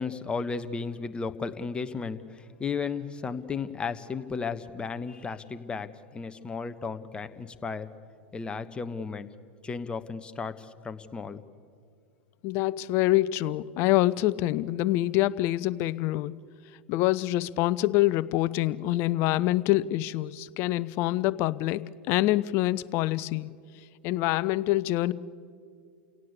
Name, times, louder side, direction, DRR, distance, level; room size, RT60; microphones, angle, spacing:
voice 1, 0.0-7.9 8.3-9.3 9.6-11.4, left 5 dB, 15° left, 10 dB, 1.2 m, -34 dB
voice 2, 12.4-16.4 16.9-23.5 24.0-25.1, left 16 dB, 50° left, 18 dB, 0.7 m, -26 dB
28.5 x 17.5 x 8.4 m, 2.3 s
hypercardioid pair, 90°, 6 cm